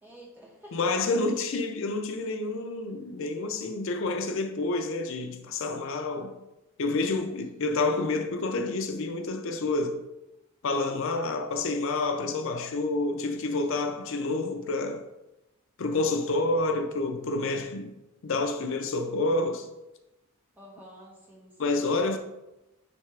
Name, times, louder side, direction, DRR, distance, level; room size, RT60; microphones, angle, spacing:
voice 1, 0.0-1.1 7.0-7.6 20.6-21.8, equal, 10° right, 1.5 m, -49 dB
voice 2, 0.7-6.3 6.8-10.0 10.6-15.0 15.8-17.9 18.2-19.7 21.6-22.2, left 2 dB, 65° left, 0.5 m, -28 dB
9.1 x 3.2 x 3.3 m
head